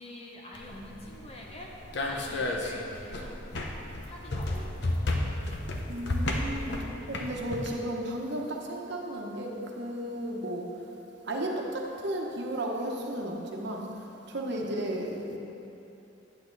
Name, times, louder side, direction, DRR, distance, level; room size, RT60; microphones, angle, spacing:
voice 1, 0.0-3.4 4.0-5.0 14.5-14.7, left 1 dB, 30° left, -1 dB, 0.8 m, -46 dB
sound 1, 0.5-7.7, left 1 dB, 60° left, 0.8 m, -33 dB
voice 2, 5.9-10.7 11.3-13.9 14.3-15.4, right 1 dB, 60° right, 0 dB, 1.0 m, -34 dB
10.0 x 8.5 x 4.0 m, 2.9 s
head